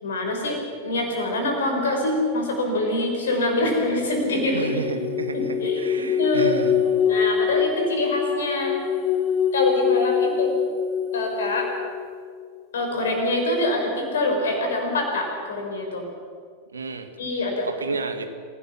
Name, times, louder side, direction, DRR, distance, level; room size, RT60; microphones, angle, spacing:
voice 1, 0.0-4.8 5.3-6.7 7.1-8.8 9.5-10.6 11.1-11.7 12.7-16.0 17.2-17.7, left 1 dB, 65° left, 2 dB, 5.7 m, -25 dB
sound 1, 4.2-12.0, left 8 dB, 30° left, 3.1 m, -24 dB
voice 2, 4.5-6.8 16.7-17.1 17.6-18.3, right 5 dB, 75° right, 8 dB, 1.7 m, -31 dB
27.5 x 17.0 x 6.1 m, 2.1 s
figure-of-eight pair, 90°, 0 cm